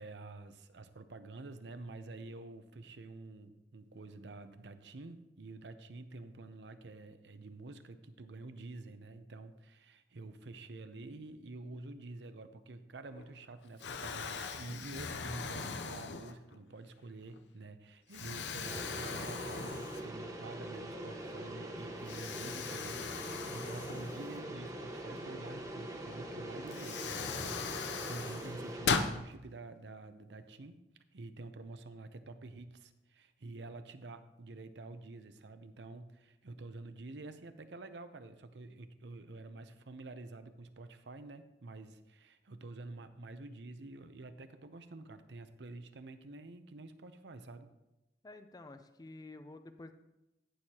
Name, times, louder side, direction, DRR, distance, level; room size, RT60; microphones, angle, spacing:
voice 1, 0.0-30.8 31.1-47.7, right 2 dB, 70° right, 10 dB, 0.7 m, -48 dB
Explosion, 13.1-13.5 13.8-16.6 17.2-17.4 18.1-20.4 20.7-20.8 22.0-24.7 26.1-26.2 26.7-29.2, left 5 dB, 80° left, 0.7 m, -39 dB
sound 1, 18.6-28.9, right 1 dB, 20° right, 1.0 m, -43 dB
voice 2, 48.2-49.9, left 2 dB, 20° left, 9 dB, 0.5 m, -50 dB
17.0 x 6.4 x 2.9 m, 0.94 s
head